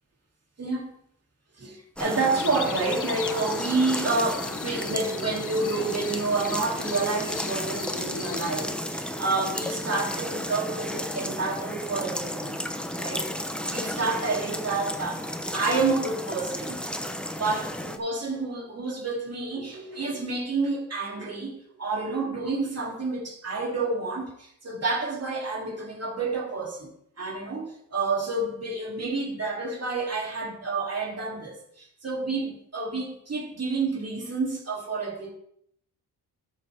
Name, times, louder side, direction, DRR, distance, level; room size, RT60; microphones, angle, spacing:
voice 1, 0.6-0.9 1.6-12.6 13.0-13.3 13.6-16.8 17.3-35.3, right 3 dB, 40° right, 3.2 m, -29 dB
sound 1, 2.0-18.0, left 1 dB, 5° left, 0.9 m, -33 dB
sound 2, 2.4-8.7, left 8 dB, 55° left, 0.7 m, -39 dB
13.0 x 7.0 x 3.6 m
cardioid pair, 100°, 38 cm